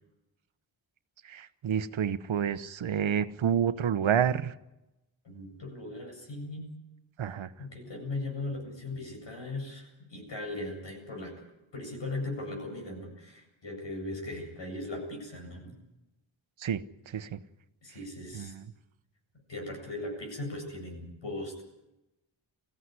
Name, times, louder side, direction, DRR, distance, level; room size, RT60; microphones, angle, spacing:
voice 1, 1.2-4.5 7.2-7.5 16.6-17.4 18.3-18.6, right 8 dB, 75° right, 13 dB, 1.0 m, -29 dB
voice 2, 5.2-6.7 7.6-11.3 11.7-15.7 17.8-18.5 19.5-21.6, left 2 dB, 65° left, 3 dB, 7.9 m, -38 dB
22.5 x 16.0 x 9.7 m, 0.95 s
wide cardioid pair, 130°, 47 cm